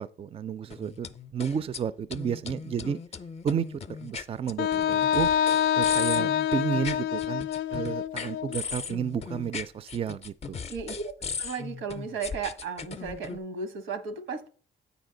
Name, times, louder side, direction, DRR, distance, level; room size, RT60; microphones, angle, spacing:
voice 1, 0.0-3.0 3.4-5.3 5.7-7.4 7.7-10.6, right 7 dB, 30° right, 0.3 m, -32 dB
sound 1, 0.7-1.8 2.1-13.4, left 5 dB, 30° left, 0.5 m, -38 dB
Wind instrument woodwind instrument, 4.6-8.6, left 9 dB, 85° left, 0.4 m, -26 dB
voice 2, 10.7-11.1 11.4-14.5, right 5 dB, 90° right, 1.0 m, -35 dB
8.1 x 5.0 x 3.8 m
cardioid pair, 90°, 20 cm